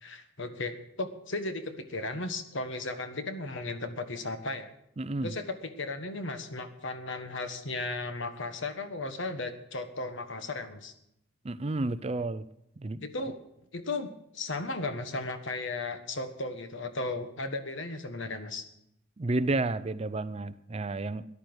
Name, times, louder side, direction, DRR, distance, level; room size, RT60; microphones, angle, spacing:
voice 1, 0.0-4.7 5.2-10.9 13.0-13.4 13.7-18.6, left 2 dB, 60° left, 9 dB, 1.4 m, -35 dB
voice 2, 5.0-5.3 11.4-12.5 12.8-13.0 19.2-21.2, right 2 dB, 30° right, 15 dB, 0.5 m, -31 dB
14.0 x 11.0 x 6.2 m, 0.80 s
head